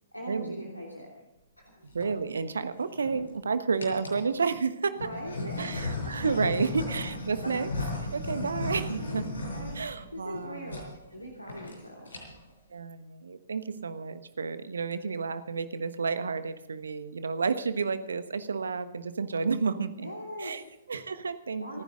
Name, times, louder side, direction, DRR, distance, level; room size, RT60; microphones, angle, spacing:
voice 1, 0.1-1.1 1.6-1.7 5.0-5.7 6.0-6.4 8.4-9.3 9.5-9.8 10.1-12.1 20.0-20.7 21.6-21.8, equal, 85° left, -1 dB, 3.0 m, -41 dB
sound 1, 1.7-2.1 2.8-3.3 3.8-4.3 5.0-10.4 10.7-10.9 11.2-11.3 11.5-11.8 12.0-12.5, left 2 dB, 70° left, 5.8 m, -35 dB
voice 2, 1.9-5.0 5.6-7.7 8.1-9.2 9.7-10.7 12.7-20.1 20.4-20.6 20.9-21.8, right 5 dB, 65° right, 12 dB, 1.3 m, -31 dB
28.5 x 10.5 x 3.9 m, 0.92 s
figure-of-eight pair, 120°, 0 cm